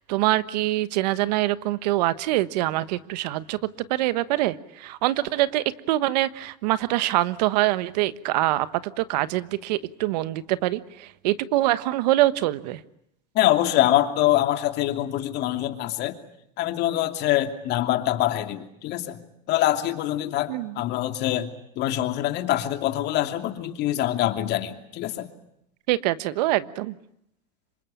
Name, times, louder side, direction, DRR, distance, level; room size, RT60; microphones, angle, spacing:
voice 1, 0.0-3.6 3.9-12.8 20.5-20.8 25.9-26.9, right 16 dB, 80° right, 15 dB, 1.3 m, -24 dB
voice 2, 13.3-16.2 16.6-19.2 19.5-21.5 21.8-25.3, left 13 dB, 55° left, 7 dB, 2.8 m, -24 dB
27.0 x 24.0 x 8.9 m, 0.77 s
supercardioid pair, 110°, 21 cm